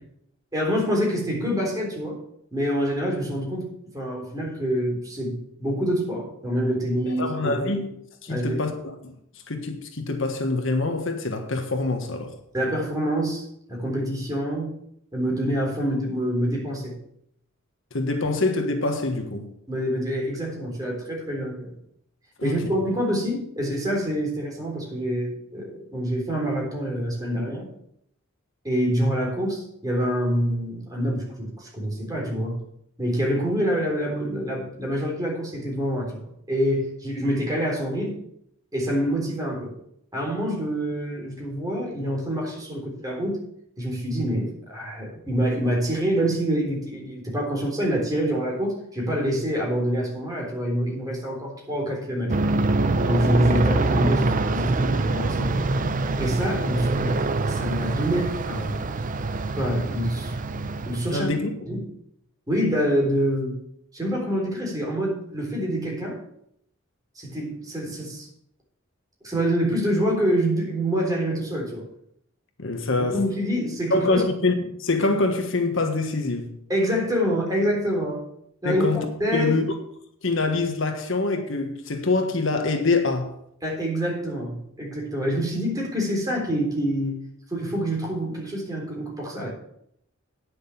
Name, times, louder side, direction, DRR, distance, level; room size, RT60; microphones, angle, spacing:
voice 1, 0.5-2.2 2.5-3.7 3.9-7.8 8.3-8.6 12.5-13.4 13.7-14.7 15.1-17.0 19.7-21.8 22.4-27.7 28.6-32.6 33.0-38.1 38.7-39.7 40.1-43.4 43.8-52.4 53.0-55.9 56.2-58.8 59.6-60.3 60.9-61.3 61.7-61.8 62.5-63.6 63.9-66.2 67.2-68.3 69.2-71.8 73.1-74.2 76.7-78.2 78.6-79.6 83.6-87.2 87.5-89.5, equal, 20° right, 3.6 m, -26 dB
voice 2, 7.1-7.9 8.2-9.1 9.5-12.3 17.9-19.5 22.4-22.7 61.1-61.5 72.6-73.2 73.9-76.5 78.6-79.0 79.3-79.6 80.2-83.3, left 3 dB, 65° left, 1.4 m, -25 dB
Aircraft, 52.3-61.3, right 3 dB, 40° right, 0.6 m, -25 dB
9.8 x 6.5 x 7.0 m
head